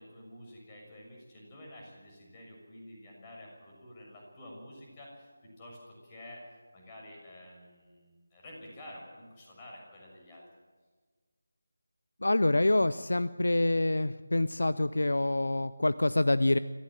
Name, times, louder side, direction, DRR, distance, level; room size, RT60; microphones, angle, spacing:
voice 1, 0.0-6.4 6.7-10.4, left 1 dB, 20° left, -1 dB, 6.6 m, -50 dB
voice 2, 12.2-16.6, left 2 dB, 65° left, 14 dB, 0.7 m, -26 dB
26.0 x 15.5 x 7.5 m, 1.4 s
figure-of-eight pair, 160°, 0 cm